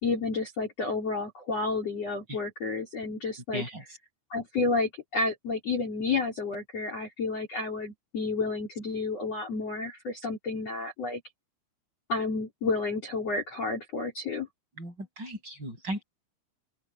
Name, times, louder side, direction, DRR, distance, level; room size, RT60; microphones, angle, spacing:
voice 1, 0.0-3.6 4.3-11.2 12.1-14.5, left 3 dB, 35° left, 4.2 m, -31 dB
voice 2, 3.5-3.8 14.8-16.0, right 1 dB, 20° right, 7.9 m, -36 dB
open air
omnidirectional pair, 5.9 m